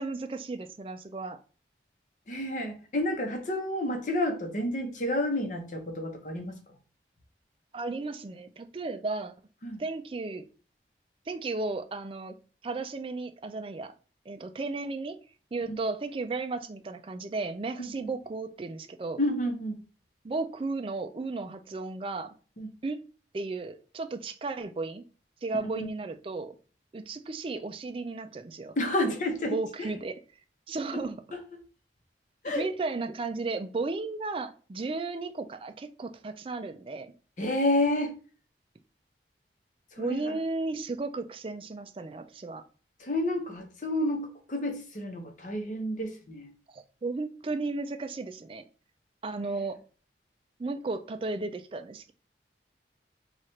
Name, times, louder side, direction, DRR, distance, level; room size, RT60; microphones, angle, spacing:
voice 1, 0.0-1.4 7.7-9.4 9.8-10.5 11.3-12.3 12.6-13.9 14.3-15.2 15.5-19.2 20.2-22.3 22.8-23.0 23.3-25.0 25.4-26.5 26.9-28.8 29.5-30.1 30.7-31.2 32.5-37.1 40.0-42.6 46.7-48.6 49.2-49.8 50.6-52.1, right 3 dB, 30° right, 0.3 m, -34 dB
voice 2, 2.3-6.6 9.6-9.8 15.7-15.8 17.8-17.9 19.2-19.8 22.6-22.7 25.8-25.9 28.8-29.9 30.9-31.0 31.3-31.4 32.4-32.7 37.4-38.1 39.9-40.4 43.0-46.5, left 1 dB, 45° left, 0.8 m, -30 dB
3.1 x 2.4 x 4.3 m
head